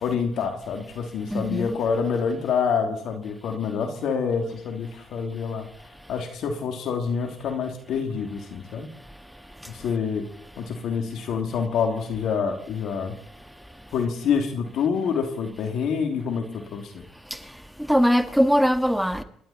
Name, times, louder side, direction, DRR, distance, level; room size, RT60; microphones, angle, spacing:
voice 1, 0.0-5.7 6.1-8.9 9.7-10.2 10.6-13.2 13.9-17.0, left 6 dB, 70° left, 2.9 m, -27 dB
voice 2, 1.3-1.8 9.6-9.7 17.3-17.5 17.9-19.2, equal, ahead, 1.5 m, -21 dB
28.0 x 11.5 x 4.3 m
supercardioid pair, 65°, 0 cm